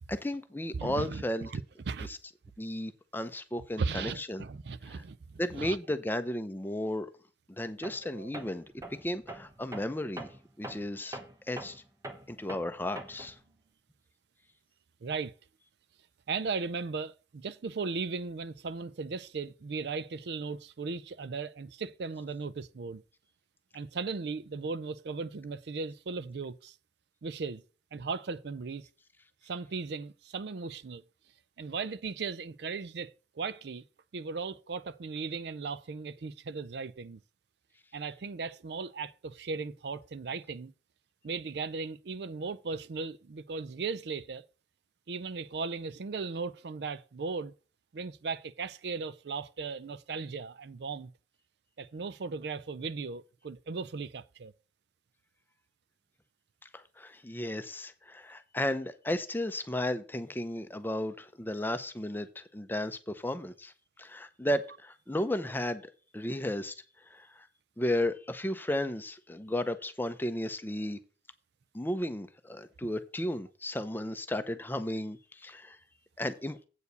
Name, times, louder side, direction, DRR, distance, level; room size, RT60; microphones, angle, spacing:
voice 1, 0.1-1.5 2.0-2.2 2.6-4.4 4.9-5.0 5.4-7.1 7.5-10.3 10.6-11.2 11.5-11.8 12.3-13.4 56.7-63.7 64.0-65.8 66.1-66.8 67.1-67.5 67.8-71.0 71.7-75.8 76.2-76.6, left 1 dB, 10° left, 0.6 m, -34 dB
voice 2, 0.7-2.1 3.8-5.8 8.0-8.3 15.0-15.3 16.3-23.0 23.7-26.8 27.2-27.6 27.9-28.9 29.4-31.0 31.6-33.8 34.1-37.2 37.9-40.7 41.2-44.4 45.1-47.5 47.9-51.1 51.8-54.5, right 4 dB, 65° right, 0.4 m, -37 dB
Tools, 7.8-8.1 8.3-13.4, right 1 dB, 15° right, 0.9 m, -44 dB
8.2 x 4.6 x 6.7 m
head